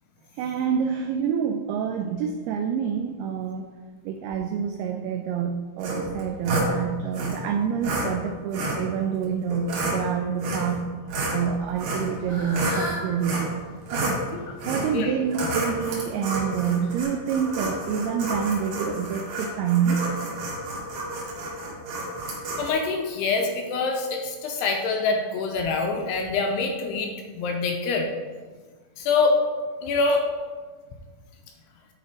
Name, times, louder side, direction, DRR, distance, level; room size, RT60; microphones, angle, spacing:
voice 1, 0.3-3.7 4.0-10.9 11.3-13.6 13.9-14.2 14.7-20.0, right 7 dB, 90° right, 5 dB, 2.2 m, -27 dB
sound 1, 5.8-6.7 7.1-7.3 7.8-8.1 8.5-8.8 9.5-10.0 10.4-10.8 11.1-12.8 13.2-13.5 13.9-14.2 14.6-14.9 15.3-22.7, right 2 dB, 60° right, 3.1 m, -30 dB
Fowl / Bird, 11.7-17.0, equal, 30° right, 0.7 m, -39 dB
voice 2, 22.6-28.1 29.0-29.4 29.8-30.2, left 4 dB, 85° left, 2 dB, 2.5 m, -25 dB
10.5 x 4.0 x 4.8 m, 1.5 s
omnidirectional pair, 5.1 m